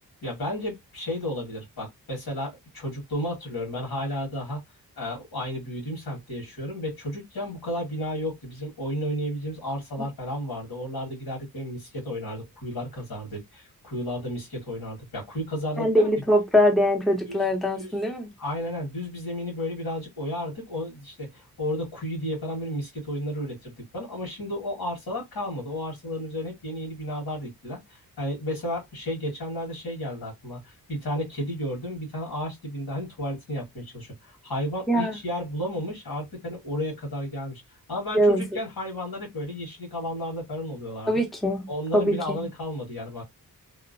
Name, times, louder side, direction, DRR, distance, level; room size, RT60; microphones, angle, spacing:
voice 1, 0.2-4.6 5.0-16.1 17.3-17.4 17.8-17.9 18.4-37.6 37.9-41.3 41.7-43.2, left 1 dB, 85° left, 1.7 m, -33 dB
voice 2, 15.8-18.3 34.9-35.1 38.1-38.4 41.1-41.7 41.9-42.4, equal, ahead, 0.6 m, -22 dB
2.9 x 2.0 x 2.6 m
wide cardioid pair, 90°, 37 cm